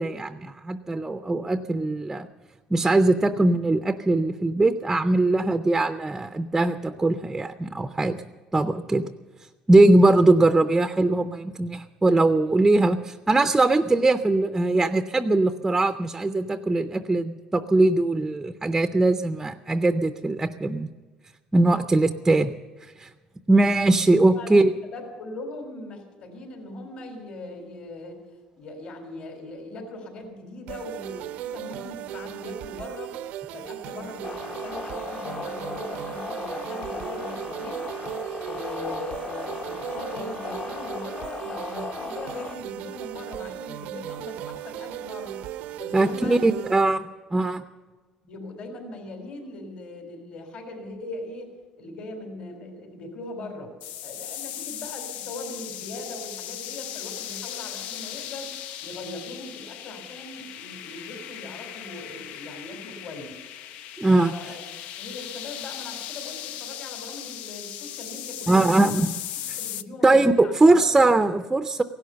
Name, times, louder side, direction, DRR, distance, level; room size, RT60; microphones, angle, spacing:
voice 1, 0.0-2.3 2.7-8.2 8.5-9.1 9.7-20.9 21.5-22.5 23.0-23.1 23.5-24.7 45.9-47.6 64.0-64.3 68.5-69.1 70.0-71.8, right 2 dB, 10° right, 9 dB, 0.5 m, -21 dB
voice 2, 24.3-28.2 28.6-33.2 33.5-37.8 38.4-45.4 45.8-46.5 48.2-53.7 54.0-58.6 58.8-63.4 64.1-64.6 65.0-68.8 69.6-71.1, left 2 dB, 55° left, 4 dB, 3.8 m, -40 dB
sound 1, 30.7-46.8, right 12 dB, 80° right, 0.6 m, -37 dB
sound 2, 34.2-42.6, left 5 dB, 40° left, 0.9 m, -36 dB
sound 3, 53.8-69.8, left 11 dB, 80° left, 0.6 m, -37 dB
16.5 x 11.5 x 6.9 m, 1.4 s
cardioid pair, 150°, 2 cm